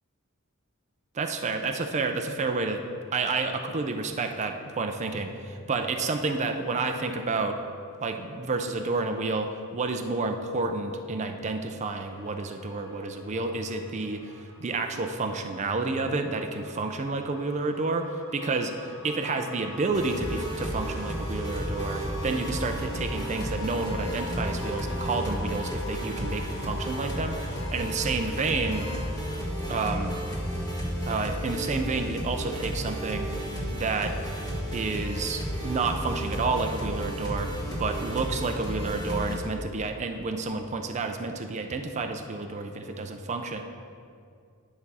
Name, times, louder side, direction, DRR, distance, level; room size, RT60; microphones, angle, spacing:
voice 1, 1.1-2.8 3.1-7.6 8.0-18.7 19.0-27.4 27.7-28.9 29.7-30.2 31.1-33.3 33.7-34.2 34.7-37.5 37.8-43.6, right 3 dB, 30° right, 5 dB, 0.5 m, -30 dB
sound 1, 12.1-29.4, left 2 dB, 65° left, 0.9 m, -44 dB
sound 2, 19.9-39.4, equal, 20° left, 1.5 m, -32 dB
9.9 x 6.0 x 4.1 m, 2.4 s
head